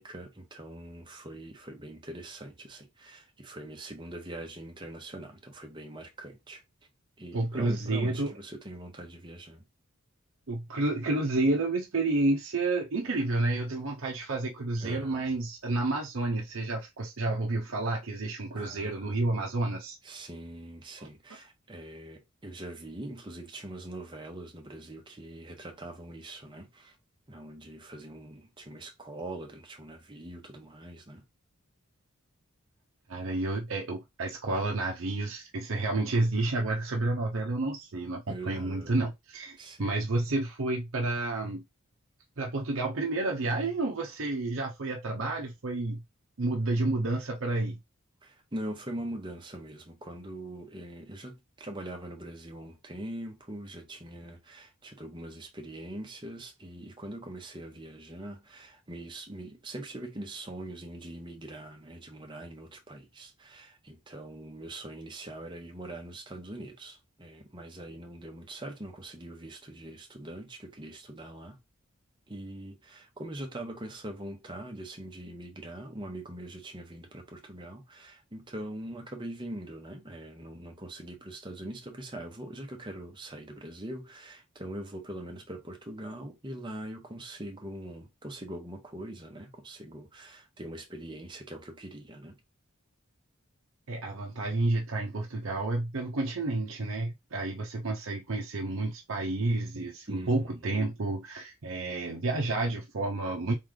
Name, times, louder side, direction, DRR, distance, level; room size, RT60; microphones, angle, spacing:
voice 1, 0.0-6.6 7.2-9.6 14.8-15.4 18.5-19.2 20.0-27.0 27.3-31.2 38.3-39.0 39.6-39.9 48.2-71.6 72.3-92.4 100.1-100.7, right 1 dB, 20° right, 0.9 m, -42 dB
voice 2, 7.3-8.3 10.5-20.0 21.0-21.1 33.1-41.6 42.4-46.0 46.4-47.8 93.9-103.5, right 2 dB, 70° right, 0.7 m, -30 dB
3.7 x 3.2 x 3.7 m
head